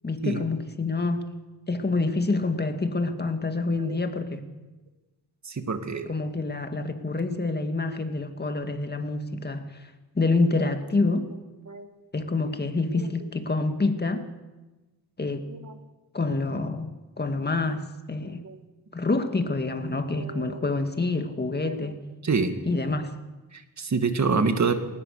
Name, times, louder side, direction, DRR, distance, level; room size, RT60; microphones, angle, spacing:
voice 1, 0.0-1.3 1.7-4.4 6.1-9.9 10.2-11.3 12.1-14.3 15.2-15.5 16.1-18.4 18.9-22.0 22.7-23.2, left 3 dB, 25° left, 7 dB, 2.0 m, -27 dB
voice 2, 5.4-6.1 11.7-11.9 12.9-13.1 15.5-15.7 18.4-18.6 20.1-20.8 21.6-21.9 22.2-22.5 23.5-24.7, right 4 dB, 45° right, 7 dB, 2.2 m, -27 dB
21.0 x 19.5 x 6.7 m, 1.1 s
cardioid pair, 100°, 40 cm